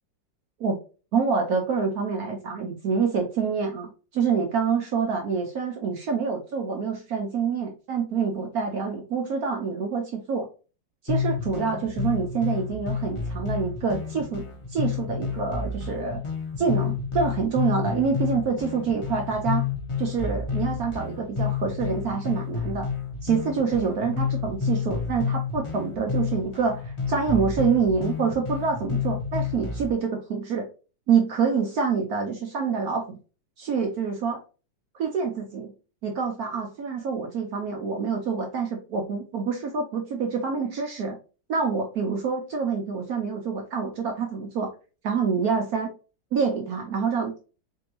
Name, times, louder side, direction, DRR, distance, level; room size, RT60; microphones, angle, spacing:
voice 1, 1.1-10.5 11.0-14.4 14.7-16.2 16.6-19.6 20.0-22.9 23.2-30.7 31.1-33.2 33.6-34.4 34.9-35.7 36.0-41.2 41.5-44.7 45.0-45.9 46.3-47.4, right 5 dB, 65° right, 2 dB, 1.0 m, -26 dB
sound 1, 11.1-29.9, left 6 dB, 40° left, 0.4 m, -30 dB
3.9 x 3.4 x 2.9 m, 0.34 s
omnidirectional pair, 2.0 m